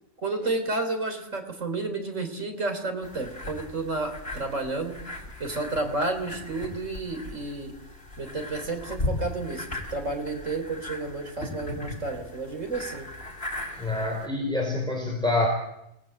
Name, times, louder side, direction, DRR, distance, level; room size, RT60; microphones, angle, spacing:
voice 1, 0.2-5.0 5.4-7.8 8.2-13.1, right 3 dB, 75° right, 5 dB, 3.9 m, -31 dB
sound 1, 3.0-14.3, left 2 dB, 50° left, 6.2 m, -38 dB
voice 2, 13.8-15.5, left 2 dB, 5° left, 0 dB, 4.5 m, -26 dB
27.5 x 19.5 x 7.7 m, 0.84 s
omnidirectional pair, 1.3 m